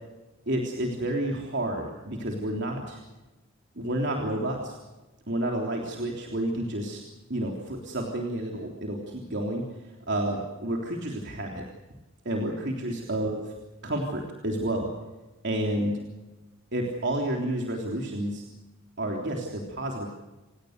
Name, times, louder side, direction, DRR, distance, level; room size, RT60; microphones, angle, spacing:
voice 1, 0.5-3.0 3.7-4.8 5.3-7.0 7.3-11.6 12.2-13.4 13.8-14.9 15.4-15.9 16.7-18.4 19.0-20.1, right 1 dB, 60° right, 0 dB, 3.4 m, -30 dB
28.5 x 18.5 x 6.7 m, 1.1 s
head